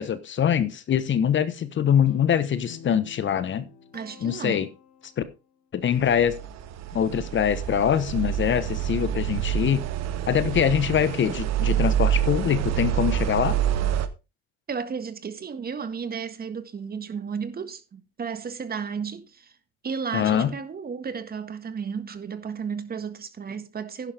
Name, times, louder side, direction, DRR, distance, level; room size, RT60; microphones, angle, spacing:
voice 1, 0.0-3.7 4.2-4.7 5.2-5.3 5.7-6.4 6.9-9.8 10.3-13.6 20.1-20.5, left 9 dB, 40° left, 1.2 m, -23 dB
Guitar, 2.1-5.3, left 5 dB, 65° left, 3.1 m, -48 dB
voice 2, 3.9-4.6 14.7-19.5 19.8-24.1, right 6 dB, 30° right, 1.7 m, -33 dB
sound 1, 6.0-14.1, right 10 dB, 55° right, 1.3 m, -27 dB
11.0 x 10.5 x 3.5 m
supercardioid pair, 90°, 31 cm